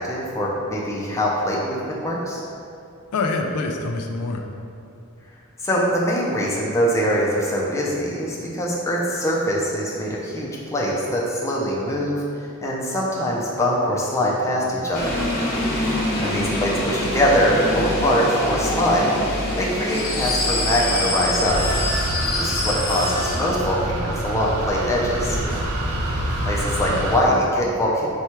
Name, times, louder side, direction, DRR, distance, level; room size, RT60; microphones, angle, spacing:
voice 1, 0.0-2.4 5.6-12.2 12.6-15.2 16.2-19.1 19.6-21.7 22.4-25.4 26.5-28.1, equal, 15° left, -4 dB, 0.5 m, -23 dB
voice 2, 3.1-4.4 16.1-16.4 22.6-22.8 26.8-27.2, left 3 dB, 90° left, 3 dB, 0.4 m, -27 dB
sound 1, 14.9-27.4, left 1 dB, 45° left, 0.8 m, -26 dB
sound 2, 21.4-27.2, right 1 dB, 70° right, 0.5 m, -27 dB
4.4 x 2.3 x 4.3 m, 2.6 s
head